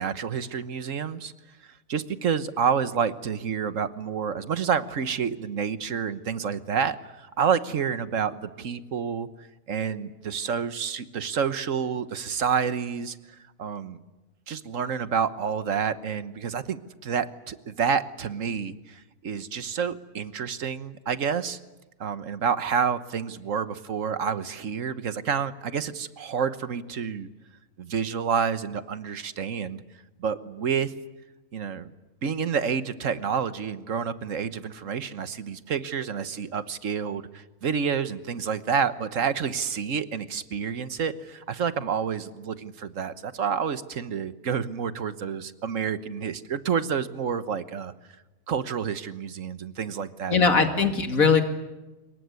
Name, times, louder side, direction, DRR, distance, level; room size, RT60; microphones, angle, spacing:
voice 1, 0.0-1.3 1.6-9.3 9.7-14.0 14.5-21.6 22.0-27.3 27.8-29.8 30.2-30.9 31.5-31.9 32.2-47.9 48.5-50.4, right 7 dB, 70° right, 12 dB, 1.5 m, -29 dB
voice 2, 50.3-51.4, left 5 dB, 85° left, 6 dB, 2.8 m, -20 dB
26.0 x 22.5 x 9.6 m, 1.1 s
omnidirectional pair, 1.4 m